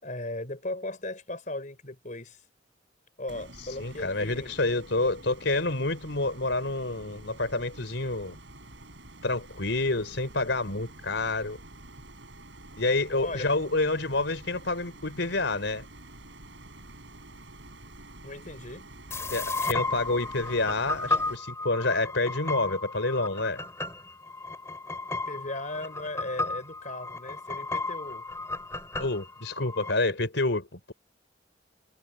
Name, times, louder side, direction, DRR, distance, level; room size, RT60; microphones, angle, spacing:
voice 1, 0.0-2.4 3.2-4.6 13.2-13.5 18.2-18.9 25.1-28.2, left 2 dB, 45° left, 4.6 m, -37 dB
sound 1, 3.3-21.4, right 2 dB, 75° right, 7.0 m, -48 dB
voice 2, 3.8-8.4 9.2-11.6 12.7-15.8 19.3-23.6 29.0-30.9, left 2 dB, 75° left, 4.0 m, -28 dB
sound 2, 19.1-29.9, left 3 dB, 15° left, 3.0 m, -34 dB
head